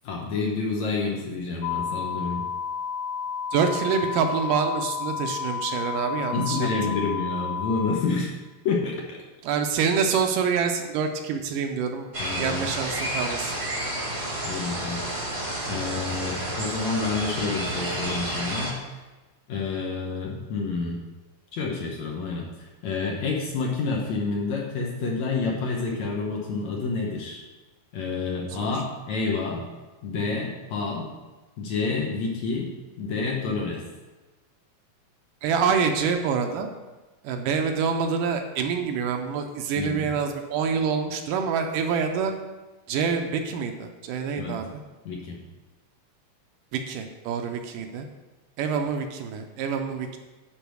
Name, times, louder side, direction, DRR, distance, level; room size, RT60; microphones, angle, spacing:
voice 1, 0.0-2.5 6.3-8.3 8.7-9.2 12.2-12.7 14.4-15.0 15.7-18.8 19.5-21.0 21.5-22.5 22.8-27.4 27.9-29.7 30.0-31.1 31.6-33.8 39.8-40.1 44.4-44.6 45.1-45.4, left 4 dB, 65° left, -1 dB, 1.9 m, -29 dB
sound 1, 1.6-7.9, left 7 dB, 85° left, 1.7 m, -31 dB
voice 2, 3.5-7.0 9.4-12.1 12.4-13.5 28.6-28.7 35.4-36.7 37.2-42.3 42.9-44.8 46.7-48.1 48.6-50.2, right 6 dB, 80° right, 5 dB, 2.2 m, -26 dB
sound 2, 12.1-18.7, right 1 dB, 25° right, 1.1 m, -30 dB
10.0 x 4.0 x 6.2 m, 1.2 s
omnidirectional pair, 4.0 m